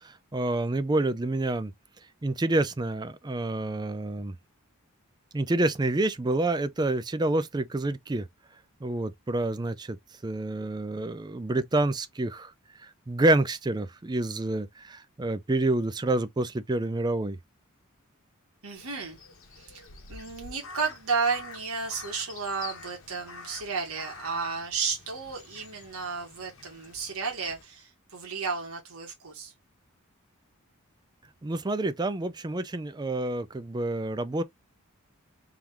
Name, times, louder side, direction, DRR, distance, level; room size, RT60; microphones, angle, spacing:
voice 1, 0.0-1.7 2.2-4.3 5.3-8.2 8.8-10.0 10.2-12.5 13.1-17.4 31.4-34.4, right 2 dB, 20° right, 0.4 m, -28 dB
voice 2, 18.6-19.2 19.5-29.5, right 5 dB, 85° right, 1.5 m, -33 dB
Crow, 18.7-27.6, left 4 dB, 70° left, 1.1 m, -47 dB
3.7 x 3.0 x 3.4 m
head